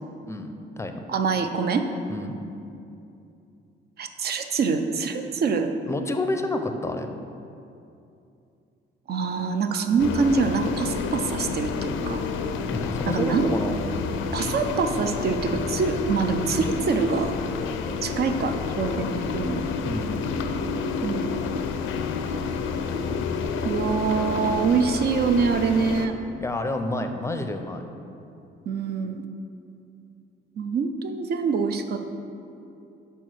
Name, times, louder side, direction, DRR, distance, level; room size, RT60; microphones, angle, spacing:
voice 1, 0.2-1.1 2.1-2.4 5.9-7.1 12.7-14.1 19.8-20.3 26.4-27.8, left 2 dB, 15° left, 6 dB, 0.5 m, -29 dB
voice 2, 1.1-1.9 4.0-5.7 9.1-12.2 13.1-13.5 14.3-17.3 18.0-19.6 21.0-21.4 23.6-26.2 28.7-29.2 30.6-32.1, right 5 dB, 55° right, 7 dB, 0.6 m, -25 dB
sound 1, 10.0-26.1, left 5 dB, 85° left, 0.5 m, -29 dB
5.5 x 4.5 x 6.3 m, 2.7 s
cardioid pair, 90°, 20 cm